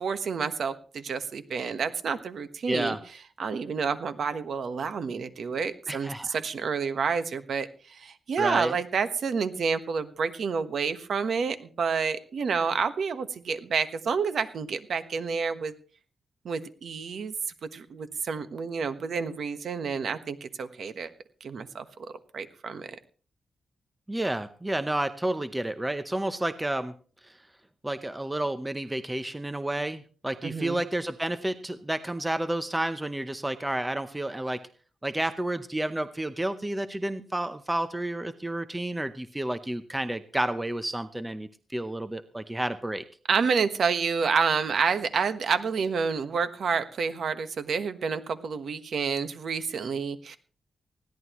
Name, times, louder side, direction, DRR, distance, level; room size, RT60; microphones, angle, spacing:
voice 1, 0.0-3.0 3.4-15.7 16.4-17.3 17.7-21.1 21.4-21.8 22.3-23.0 30.4-30.8 43.3-50.4, right 5 dB, 55° right, 10 dB, 1.3 m, -29 dB
voice 2, 2.7-3.0 5.9-6.4 8.4-8.8 24.1-26.9 27.2-27.4 27.8-34.6 35.0-43.0, right 1 dB, 10° right, 11 dB, 0.7 m, -30 dB
20.5 x 15.5 x 3.1 m, 0.39 s
wide cardioid pair, 175°, 0 cm